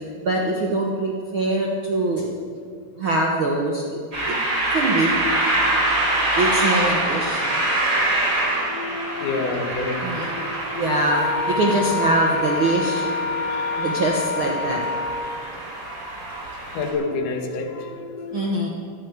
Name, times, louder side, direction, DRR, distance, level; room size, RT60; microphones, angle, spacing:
voice 1, 0.2-2.3 3.0-3.9 4.3-4.4 4.7-5.1 6.4-7.6 10.0-13.1 13.7-14.9 18.3-18.7, right 2 dB, 65° right, 0 dB, 1.3 m, -23 dB
sound 1, 4.1-16.9, right 1 dB, 20° right, 4.4 m, -25 dB
voice 2, 8.7-11.0 13.5-13.9 16.7-18.7, left 3 dB, 65° left, 2 dB, 2.8 m, -29 dB
Wind instrument woodwind instrument, 11.1-15.4, left 4 dB, 35° left, 2.5 m, -26 dB
12.0 x 12.0 x 9.3 m, 2.3 s
omnidirectional pair, 4.2 m